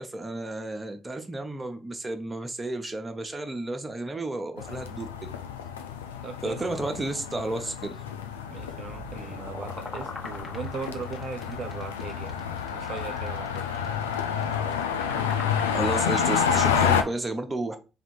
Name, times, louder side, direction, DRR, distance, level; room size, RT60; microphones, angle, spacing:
voice 1, 0.0-5.3 6.4-8.0 15.7-17.8, right 2 dB, 20° right, 0.9 m, -32 dB
sound 1, 4.6-17.0, left 7 dB, 90° left, 0.4 m, -29 dB
voice 2, 6.2-6.9 8.5-12.4 12.7-13.7 16.1-16.2, right 5 dB, 50° right, 0.4 m, -38 dB
sound 2, 8.9-17.0, left 2 dB, 20° left, 1.3 m, -43 dB
3.5 x 2.6 x 4.5 m
hypercardioid pair, 50°, 0 cm